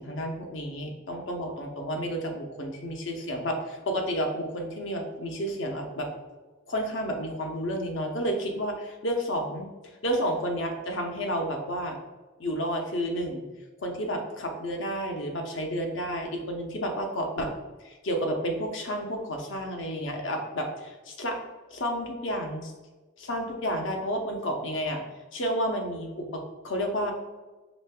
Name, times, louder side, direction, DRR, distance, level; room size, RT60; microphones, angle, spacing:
voice 1, 0.0-6.1 6.7-9.7 10.0-12.0 12.4-13.4 13.8-17.5 17.8-21.4 21.7-22.7 23.2-25.0 25.3-27.1, equal, 65° left, 2 dB, 0.7 m, -31 dB
5.1 x 3.2 x 2.2 m, 1.2 s
head